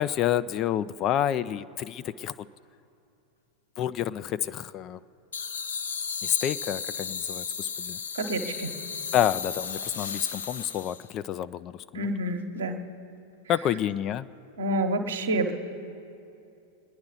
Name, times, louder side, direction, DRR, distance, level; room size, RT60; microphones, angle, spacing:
voice 1, 0.0-2.5 3.8-5.0 6.2-8.0 9.1-12.0 13.5-14.3, left 11 dB, 35° left, 14 dB, 0.4 m, -29 dB
sound 1, 5.3-11.1, left 6 dB, 65° left, 0.7 m, -35 dB
voice 2, 8.1-8.8 11.9-12.8 14.6-15.5, right 1 dB, 65° right, 4 dB, 1.2 m, -28 dB
27.0 x 10.5 x 4.0 m, 2.7 s
figure-of-eight pair, 90°, 0 cm